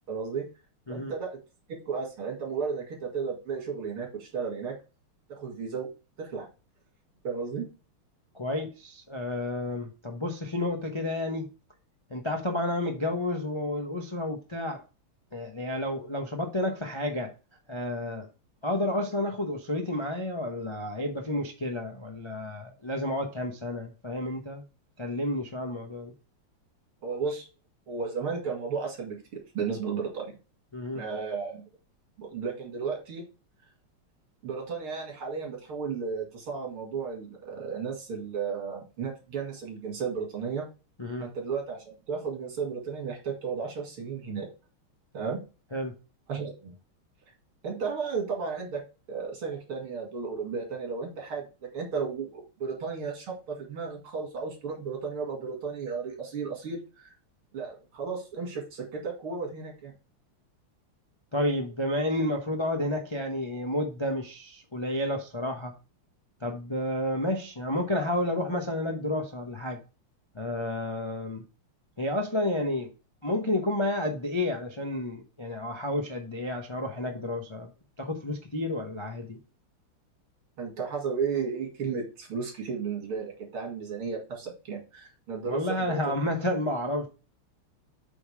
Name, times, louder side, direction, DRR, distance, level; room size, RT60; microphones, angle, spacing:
voice 1, 0.1-0.5 0.9-1.4 1.7-4.7 5.4-5.9 6.2-6.5 7.2-7.7 27.0-27.5 27.9-30.3 30.9-31.6 32.2-33.2 34.4-40.7 41.2-44.5 45.1-45.4 46.3-46.7 47.6-48.8 49.1-51.4 51.7-57.1 57.5-59.9 80.6-86.2, right 5 dB, 85° right, 3.2 m, -34 dB
voice 2, 8.3-11.5 12.1-14.8 15.3-17.3 17.7-18.3 18.6-24.6 25.0-26.1 30.7-31.0 41.0-41.3 45.7-45.9 61.3-65.7 66.4-69.8 70.3-71.4 72.0-72.9 73.2-77.7 78.0-79.4 85.5-87.1, left 1 dB, 35° left, 0.4 m, -31 dB
7.8 x 3.7 x 4.8 m
omnidirectional pair, 2.3 m